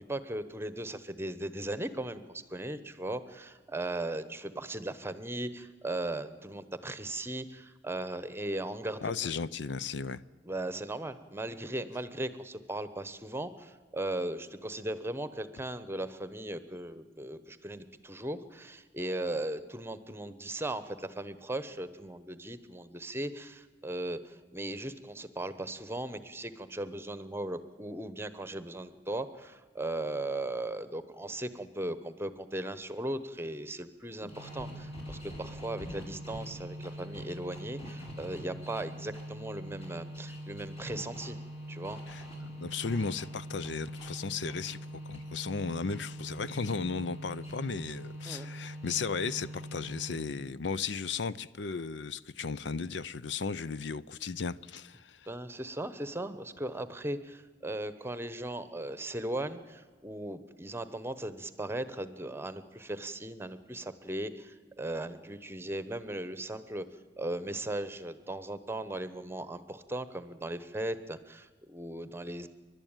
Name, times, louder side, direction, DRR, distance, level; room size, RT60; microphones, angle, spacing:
voice 1, 0.0-9.1 10.4-41.4 41.7-42.0 48.3-48.5 55.3-66.8 67.2-72.5, right 1 dB, 15° right, 1.0 m, -37 dB
voice 2, 9.0-10.2 34.2-34.3 42.1-55.3, left 5 dB, 75° left, 0.6 m, -35 dB
sound 1, 34.3-50.4, equal, 35° left, 5.8 m, -43 dB
29.5 x 12.0 x 9.0 m
head